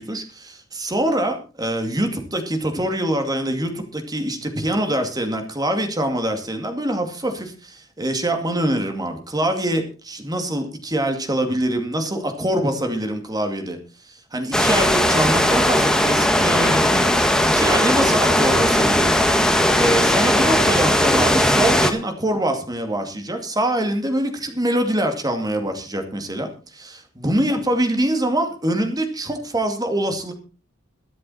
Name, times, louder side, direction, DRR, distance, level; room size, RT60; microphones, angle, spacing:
voice 1, 0.0-13.8 14.0-17.1 17.4-19.1 19.7-30.3, right 1 dB, 20° right, 5 dB, 2.4 m, -24 dB
sound 1, 14.5-21.9, left 1 dB, 5° left, 1.5 m, -18 dB
22.5 x 7.6 x 4.3 m, 0.35 s
head